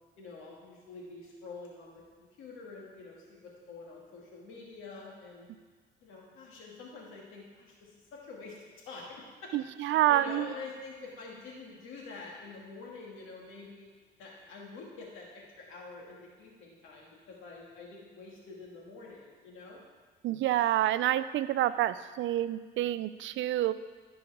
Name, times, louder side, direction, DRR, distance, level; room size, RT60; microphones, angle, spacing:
voice 1, 0.2-5.5 6.0-8.6 8.9-9.5 9.9-19.8, left 3 dB, 90° left, -3 dB, 2.3 m, -47 dB
voice 2, 9.5-10.5 20.2-23.7, right 13 dB, 75° right, 15 dB, 0.4 m, -28 dB
15.0 x 5.2 x 3.6 m, 1.4 s
cardioid pair, 90°, 20 cm